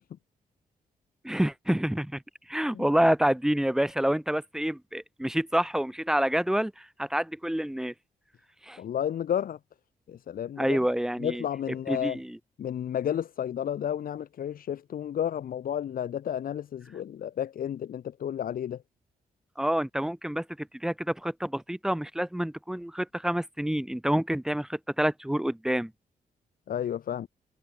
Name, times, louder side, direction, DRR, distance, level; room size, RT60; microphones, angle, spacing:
voice 1, 1.2-2.2 2.5-7.9 8.6-8.8 10.6-11.4 11.9-12.4 19.6-25.9, equal, 5° right, 1.9 m, -28 dB
voice 2, 8.8-9.6 10.1-10.8 11.2-12.2 12.6-18.8 26.7-27.3, left 9 dB, 70° left, 2.5 m, -32 dB
wide cardioid pair, 145°, 15 cm